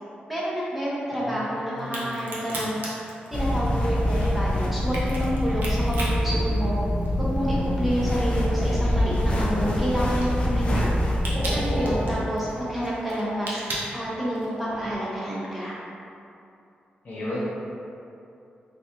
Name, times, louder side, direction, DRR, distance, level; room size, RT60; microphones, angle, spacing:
voice 1, 0.3-2.8 3.3-6.8 7.2-10.9 11.3-13.6 13.9-15.7, equal, ahead, -8 dB, 0.7 m, -29 dB
voice 2, 1.2-2.3 11.3-12.0 17.0-17.4, left 1 dB, 50° left, -9 dB, 1.0 m, -32 dB
Crack, 1.8-7.3 7.6-14.6, right 1 dB, 80° right, 0.7 m, -37 dB
sound 1, 3.3-12.2, left 1 dB, 35° left, 0.4 m, -25 dB
sound 2, 6.2-9.8 11.1-13.4 13.9-14.1 14.7-14.9, equal, 30° right, 0.7 m, -41 dB
3.8 x 2.2 x 2.9 m, 2.6 s
wide cardioid pair, 130°, 3 cm